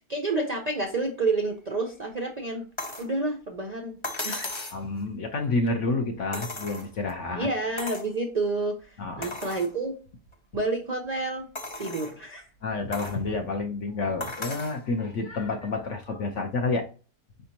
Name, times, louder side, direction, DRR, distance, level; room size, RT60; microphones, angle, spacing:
voice 1, 0.1-2.7 3.0-4.0 4.2-4.6 7.3-9.9 10.5-11.5 11.8-12.5, right 3 dB, 55° right, 2 dB, 0.4 m, -29 dB
sound 1, 2.8-3.1 4.0-4.8 6.3-7.1 7.8-8.1 8.6-8.7 9.2-9.7 10.3-10.4 11.6-12.2 12.9-13.2 14.2-14.8 16.0-16.1, left 2 dB, 30° left, 0.6 m, -36 dB
voice 2, 4.7-7.5 9.0-9.6 12.6-16.8, left 3 dB, 60° left, 4 dB, 0.9 m, -29 dB
5.1 x 3.4 x 2.8 m, 0.36 s
omnidirectional pair, 1.8 m